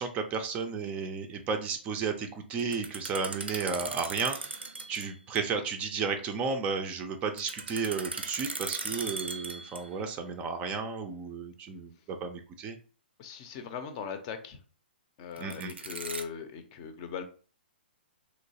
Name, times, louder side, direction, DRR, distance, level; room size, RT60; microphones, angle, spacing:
voice 1, 0.0-12.8 15.4-15.7, right 5 dB, 25° right, 6 dB, 0.4 m, -33 dB
sound 1, 2.6-5.1 5.4-5.5 7.4-10.0 15.4-16.2, right 3 dB, 90° right, 0.6 m, -38 dB
voice 2, 13.2-14.6 15.2-17.2, left 7 dB, 40° left, 8 dB, 0.6 m, -39 dB
3.1 x 2.9 x 2.8 m, 0.39 s
hypercardioid pair, 125°, 6 cm